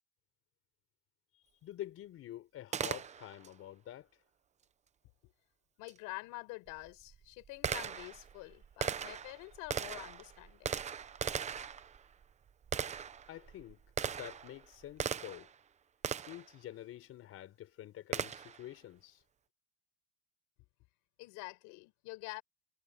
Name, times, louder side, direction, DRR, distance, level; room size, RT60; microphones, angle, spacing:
voice 1, 1.3-4.1 13.3-15.5 16.3-19.2, left 13 dB, 45° left, 4.3 m, -48 dB
Gunshot gunfire, 2.7-3.5 5.9-6.0 6.7-15.6 16.0-16.5 18.1-18.7, right 7 dB, 20° right, 0.8 m, -39 dB
voice 2, 5.8-10.8 21.2-22.4, left 24 dB, 75° left, 5.7 m, -47 dB
cardioid pair, 155°, 31 cm